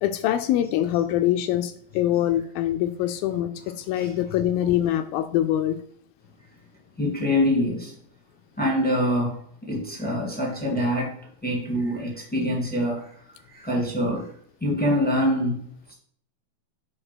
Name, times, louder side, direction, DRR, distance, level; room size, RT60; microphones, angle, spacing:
voice 1, 0.0-5.8, left 12 dB, 80° left, 9 dB, 2.2 m, -24 dB
voice 2, 7.0-7.9 8.6-11.1 11.4-13.1 13.5-14.3 14.6-15.6, equal, 5° left, -3 dB, 0.9 m, -25 dB
7.9 x 4.1 x 5.9 m, 0.64 s
omnidirectional pair, 4.4 m